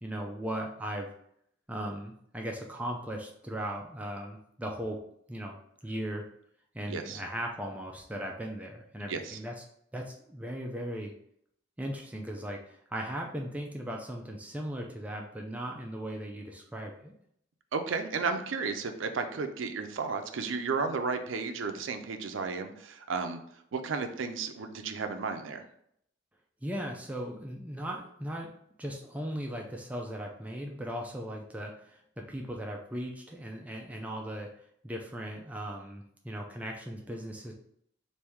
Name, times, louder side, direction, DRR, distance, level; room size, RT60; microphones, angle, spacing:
voice 1, 0.0-1.1 1.7-5.0 5.3-5.6 5.8-6.3 6.7-9.6 9.9-11.1 11.8-17.1 26.6-28.5 28.8-34.5 34.8-37.5, equal, 5° right, 0 dB, 0.4 m, -38 dB
voice 2, 6.9-7.2 9.1-9.4 17.7-23.4 23.7-25.6, right 4 dB, 75° right, 7 dB, 0.5 m, -33 dB
3.4 x 2.6 x 4.5 m, 0.70 s
head